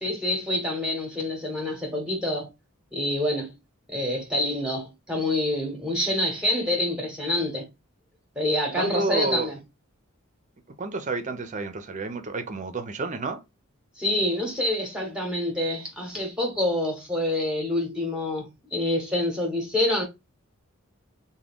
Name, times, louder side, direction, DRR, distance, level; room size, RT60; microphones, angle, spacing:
voice 1, 0.0-2.5 2.9-3.5 3.9-7.7 8.4-9.6 14.0-20.0, left 1 dB, 5° right, 1.0 m, -27 dB
voice 2, 8.8-9.5 10.8-13.4, right 3 dB, 35° right, 0.6 m, -30 dB
3.6 x 2.2 x 3.5 m
head